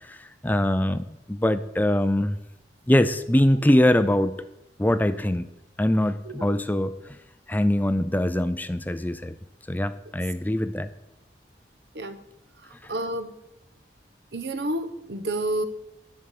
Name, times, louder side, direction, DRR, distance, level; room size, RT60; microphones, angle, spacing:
voice 1, 0.0-2.4 2.9-4.4 4.8-5.5 5.8-7.0 7.5-9.3 9.7-10.9, left 1 dB, 10° left, 12 dB, 0.4 m, -23 dB
voice 2, 12.9-13.3 14.3-15.6, right 1 dB, 70° right, 11 dB, 1.1 m, -29 dB
11.0 x 7.3 x 8.4 m, 0.89 s
head